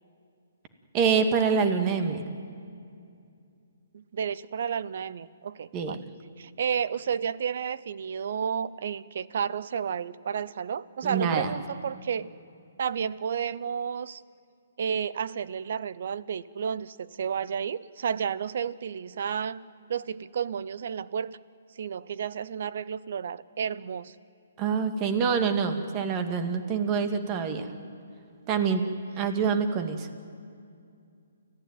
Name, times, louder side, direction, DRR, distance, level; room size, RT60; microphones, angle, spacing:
voice 1, 0.9-2.3 5.7-6.0 11.0-11.5 24.6-27.7 28.5-28.8 29.2-30.1, right 6 dB, 30° right, 7 dB, 2.2 m, -26 dB
voice 2, 3.9-6.0 6.4-12.3 12.8-14.2 14.8-21.4 21.8-24.1 28.7-28.8, right 7 dB, 60° right, 18 dB, 0.8 m, -32 dB
29.5 x 15.0 x 9.3 m, 2.4 s
hypercardioid pair, 140°, 0 cm